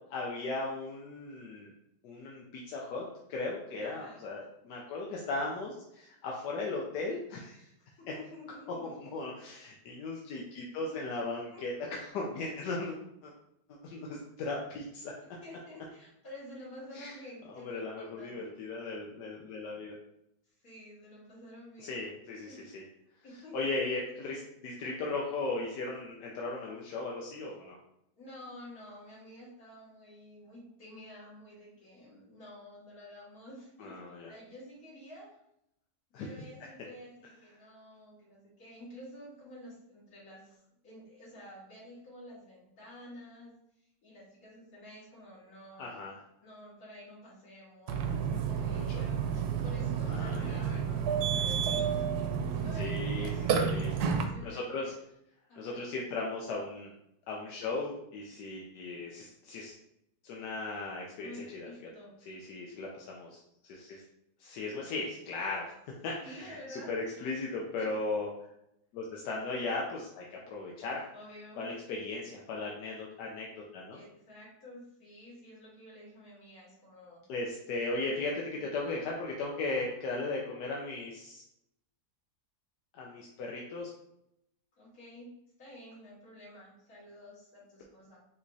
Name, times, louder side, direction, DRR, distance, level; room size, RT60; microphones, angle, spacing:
voice 1, 0.1-1.7 2.0-7.7 8.8-13.0 13.2-13.3 13.8-15.1 16.9-17.1 17.5-19.9 21.8-22.8 23.5-27.8 33.8-34.3 36.1-36.3 45.8-46.1 48.7-49.0 50.1-50.6 52.8-53.9 54.4-54.8 55.6-56.9 57.3-59.7 60.2-61.9 62.3-63.3 63.6-64.0 64.4-65.7 66.0-68.3 68.9-71.1 71.6-74.0 77.3-81.4 82.9-83.9, left 3 dB, 85° left, -2 dB, 1.3 m, -37 dB
voice 2, 3.8-4.2 7.8-8.9 10.9-11.0 11.5-11.6 15.4-18.5 20.6-22.0 22.5-22.7 23.2-23.7 28.2-34.0 34.3-35.3 36.2-40.6 40.8-43.5 44.0-46.1 46.4-51.0 51.4-51.9 52.5-53.4 54.1-54.9 55.5-55.9 61.2-62.1 66.2-66.9 67.8-68.0 71.1-71.7 73.9-77.2 84.8-85.3 85.6-88.2, left 1 dB, 60° left, -7 dB, 2.3 m, -50 dB
Burping eructation, 47.9-54.2, right 7 dB, 75° right, 1.1 m, -31 dB
5.5 x 3.0 x 2.7 m, 0.78 s
omnidirectional pair, 1.8 m